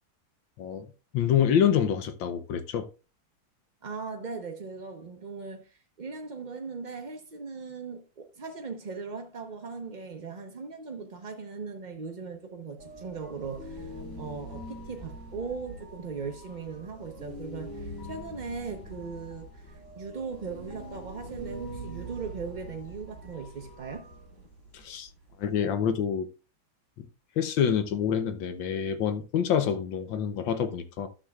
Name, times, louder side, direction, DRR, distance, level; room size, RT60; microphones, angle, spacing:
voice 1, 0.6-2.9 24.7-25.1 25.4-26.3 27.0-27.1 27.4-31.1, left 8 dB, 75° left, 1.5 m, -27 dB
voice 2, 3.8-24.1, right 4 dB, 50° right, 0.5 m, -39 dB
sound 1, 12.8-25.6, right 1 dB, 10° left, 3.9 m, -43 dB
12.5 x 7.5 x 2.4 m
omnidirectional pair, 2.1 m